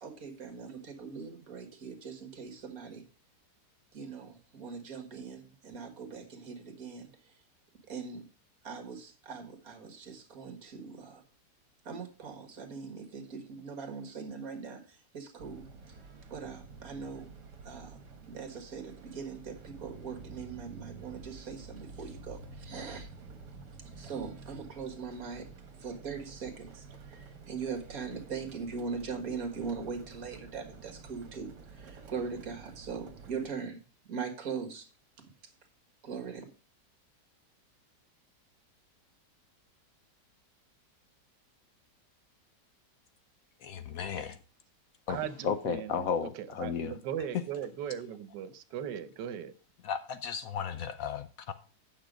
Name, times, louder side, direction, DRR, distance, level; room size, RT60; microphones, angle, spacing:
voice 1, 0.0-3.0 3.9-7.1 7.9-8.2 8.6-11.2 11.9-14.8 15.1-15.6 16.3-17.3 17.7-18.0 18.3-23.1 24.0-25.5 25.8-26.8 27.5-31.5 31.8-33.8 34.1-34.8 36.0-36.5, right 5 dB, 55° right, 2.0 m, -40 dB
sound 1, 15.4-33.5, right 4 dB, 75° right, 1.8 m, -50 dB
voice 2, 43.6-44.4 45.1-46.9 49.8-51.5, left 6 dB, 65° left, 1.0 m, -34 dB
voice 3, 45.1-46.1 46.4-49.5, right 9 dB, 90° right, 1.4 m, -38 dB
8.7 x 6.1 x 5.0 m
omnidirectional pair, 1.8 m